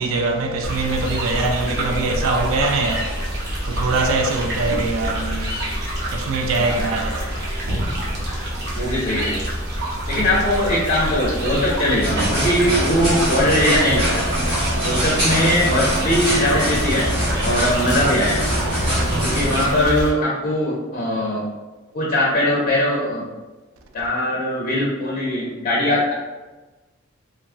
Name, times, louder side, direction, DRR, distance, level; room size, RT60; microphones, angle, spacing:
voice 1, 0.0-5.7 6.0-8.8 9.9-10.0 19.0-19.4, right 3 dB, 85° right, 0.4 m, -24 dB
sound 1, 0.6-20.1, equal, 55° right, 0.8 m, -26 dB
voice 2, 6.6-7.1 8.7-9.4 10.1-18.5 19.2-21.4 21.9-23.3 23.9-26.1, left 1 dB, 45° left, 0.6 m, -21 dB
sound 2, 12.0-19.7, right 1 dB, 20° right, 1.3 m, -23 dB
3.3 x 2.1 x 2.5 m
head